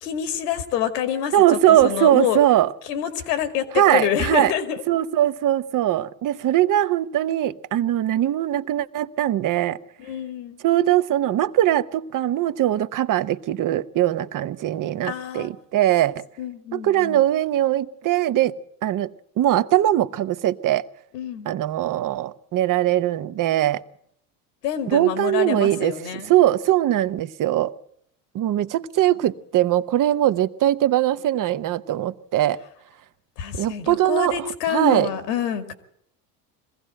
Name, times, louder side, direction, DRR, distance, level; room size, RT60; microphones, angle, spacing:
voice 1, 0.0-2.4 2.8-4.8 10.0-10.6 15.1-15.5 16.4-17.2 21.1-21.5 24.6-26.3 33.4-35.7, left 9 dB, 80° left, 2.3 m, -27 dB
voice 2, 1.3-2.7 3.7-4.5 4.9-9.8 10.6-16.2 16.7-18.5 18.8-20.8 21.5-23.8 24.9-25.9 26.3-27.7 28.3-32.6 33.6-35.1, right 13 dB, 40° right, 0.9 m, -21 dB
22.0 x 15.5 x 7.7 m
hypercardioid pair, 85°, 47 cm